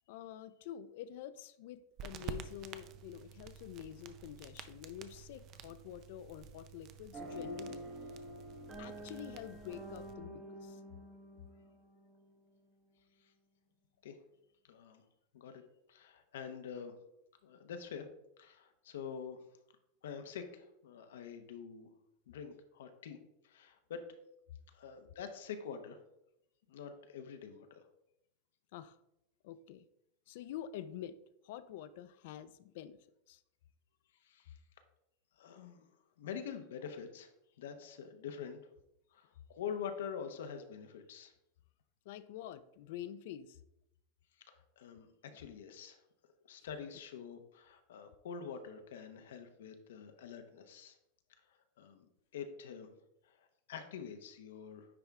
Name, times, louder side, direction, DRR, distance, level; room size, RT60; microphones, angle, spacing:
voice 1, 0.1-7.9 8.8-10.8 28.7-29.0 29.4-29.8 30.3-31.2 31.4-33.4 42.1-43.6, left 11 dB, 65° left, 14 dB, 0.4 m, -47 dB
sound 1, 2.0-10.1, right 7 dB, 35° right, 0.5 m, -50 dB
sound 2, 7.1-12.6, equal, 20° right, 0.9 m, -48 dB
voice 2, 14.7-15.0 15.3-15.6 15.9-16.9 17.4-18.1 18.4-19.4 20.0-21.9 22.3-23.2 23.4-24.0 24.7-26.0 26.7-27.8 34.2-34.6 35.4-35.9 36.2-37.3 37.6-38.6 39.1-41.3 44.4-46.0 46.5-51.0 51.8-52.9 53.2-54.9, left 7 dB, 90° left, 7 dB, 0.8 m, -46 dB
9.7 x 3.4 x 3.5 m, 0.83 s
supercardioid pair, 150°, 0 cm